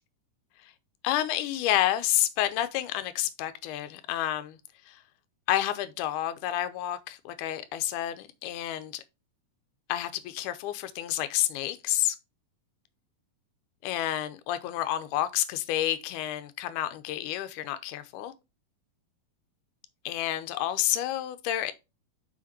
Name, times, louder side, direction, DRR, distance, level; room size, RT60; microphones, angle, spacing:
voice 1, 1.0-4.6 4.9-5.0 5.5-9.0 9.9-12.2 13.8-18.3 20.1-21.7, left 13 dB, 80° left, 2.0 m, -29 dB
5.8 x 5.1 x 4.2 m
omnidirectional pair, 3.9 m